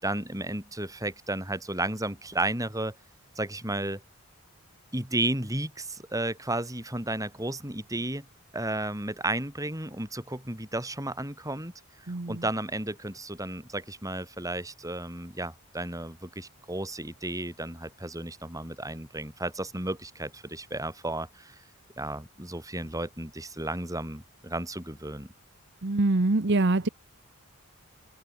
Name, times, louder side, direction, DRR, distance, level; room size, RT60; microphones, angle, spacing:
voice 1, 0.0-2.9 3.3-4.0 4.9-8.2 8.5-11.7 12.3-21.5 22.0-25.3, right 1 dB, 15° right, 6.4 m, -33 dB
voice 2, 12.1-12.4 25.8-26.9, right 2 dB, 50° right, 1.0 m, -24 dB
head